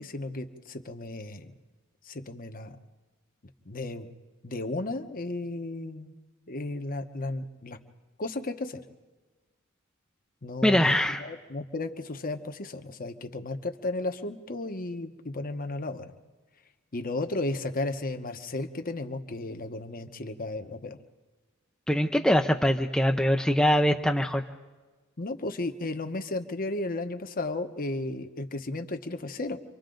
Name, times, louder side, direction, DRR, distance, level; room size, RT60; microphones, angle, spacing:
voice 1, 0.0-1.5 2.1-2.8 3.7-4.1 4.4-6.1 6.5-7.8 8.2-8.8 10.4-16.1 16.9-21.0 25.2-29.6, left 2 dB, 40° left, 7 dB, 1.1 m, -34 dB
voice 2, 10.6-11.2 21.9-24.4, equal, 5° left, 3 dB, 0.6 m, -23 dB
29.0 x 24.5 x 3.9 m, 1.3 s
head